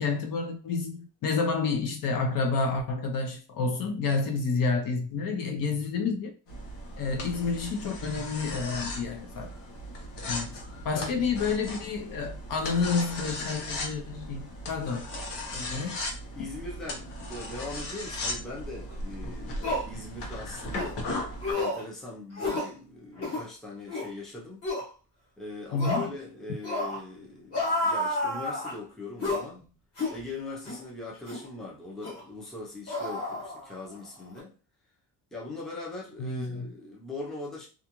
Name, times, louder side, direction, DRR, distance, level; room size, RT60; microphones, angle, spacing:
voice 1, 0.0-6.3 7.0-9.5 10.3-15.1 15.5-16.0 25.7-26.1 36.2-36.7, left 4 dB, 55° left, 0.6 m, -29 dB
sound 1, 6.5-21.5, left 1 dB, 85° left, 0.9 m, -37 dB
voice 2, 10.9-11.3 16.3-21.0 21.5-24.6 25.4-29.6 30.1-34.5 35.3-37.7, left 2 dB, ahead, 0.5 m, -41 dB
(Male) Grunts and Yells, 18.9-19.0 19.6-19.9 20.7-20.9 21.4-21.8 22.4-22.7 23.2-23.5 23.9-24.1 24.6-24.9 25.8-26.1 26.6-27.0 27.5-28.8 29.2-29.5 30.0-30.2 30.7-30.8 31.3-31.5 32.0-32.2 32.9-33.9 34.2-34.4, left 2 dB, 35° left, 1.1 m, -30 dB
2.4 x 2.3 x 2.9 m
cardioid pair, 175°, 41 cm